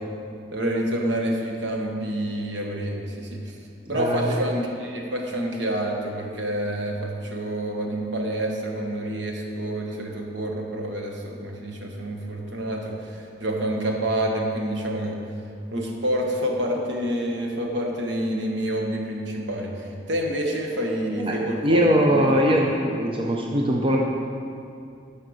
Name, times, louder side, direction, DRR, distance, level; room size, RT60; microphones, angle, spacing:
voice 1, 0.5-3.6 3.9-15.2 15.7-21.8 22.1-22.3, right 1 dB, 65° right, 1 dB, 1.2 m, -28 dB
voice 2, 3.9-4.3 21.2-24.0, equal, 30° right, -1 dB, 0.6 m, -21 dB
8.9 x 5.6 x 6.3 m, 2.5 s
head